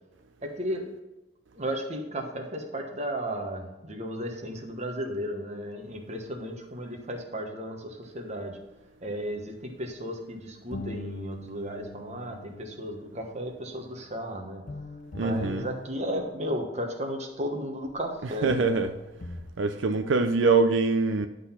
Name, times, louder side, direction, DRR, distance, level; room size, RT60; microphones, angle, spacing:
voice 1, 0.4-0.9 1.5-8.6 9.0-14.9 15.2-18.8, equal, 40° right, 1.2 m, -34 dB
sound 1, 10.7-16.6 17.9-18.0 18.5-19.5, left 2 dB, 45° left, 0.6 m, -43 dB
voice 2, 15.1-15.6 18.4-18.9 19.6-21.3, right 4 dB, 85° right, 0.5 m, -23 dB
11.0 x 3.9 x 5.7 m
head